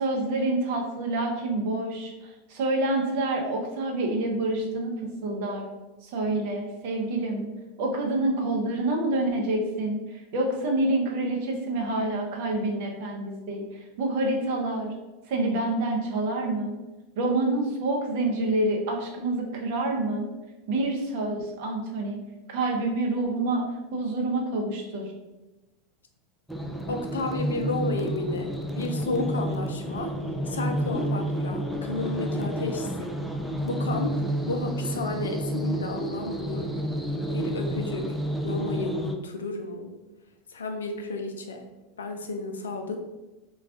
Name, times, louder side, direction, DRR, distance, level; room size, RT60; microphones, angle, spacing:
voice 1, 0.0-4.9 5.2-5.7 6.0-7.5 7.8-14.9 15.3-16.8 17.2-20.3 20.7-22.2 22.5-23.6 23.9-25.1, right 2 dB, 65° right, 1 dB, 0.7 m, -27 dB
sound 1, 26.5-39.1, right 1 dB, ahead, 0.4 m, -30 dB
voice 2, 26.9-30.1 30.5-33.2 33.6-36.8 37.3-38.1 38.4-40.0 40.5-41.7 42.0-43.0, left 3 dB, 90° left, 5 dB, 0.4 m, -32 dB
2.3 x 2.3 x 3.6 m, 1.1 s
hypercardioid pair, 95°, 0 cm